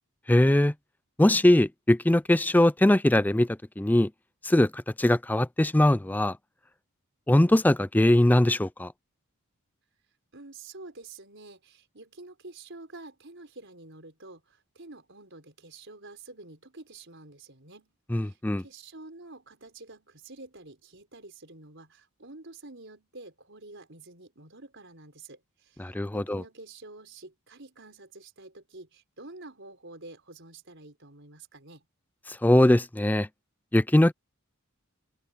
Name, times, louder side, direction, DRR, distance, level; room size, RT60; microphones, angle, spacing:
voice 1, 0.3-0.7 1.2-3.5 3.8-4.1 4.4-6.3 7.3-8.9 18.1-18.6 25.8-26.4 32.3-33.3 33.7-34.1, left 1 dB, 10° left, 0.4 m, -21 dB
voice 2, 10.3-31.9, right 2 dB, 55° right, 5.5 m, -48 dB
open air
head